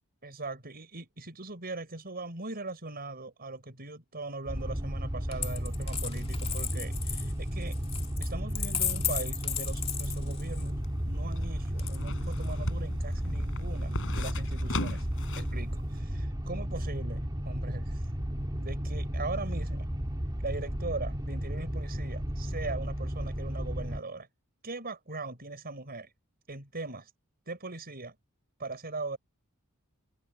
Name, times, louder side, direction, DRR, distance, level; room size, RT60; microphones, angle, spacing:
voice 1, 0.2-7.8 8.2-10.8 11.1-15.1 15.3-18.1 18.6-19.9 20.4-24.3 24.6-26.1 26.5-27.1 27.5-28.2 28.6-29.2, right 3 dB, 45° right, 6.1 m, -40 dB
sound 1, 4.5-24.0, equal, 20° right, 1.5 m, -33 dB
Coin (dropping), 5.3-10.7 11.8-12.5, left 8 dB, 25° left, 2.2 m, -35 dB
sound 2, 10.5-15.6 15.9-16.0, left 2 dB, 60° left, 6.3 m, -38 dB
head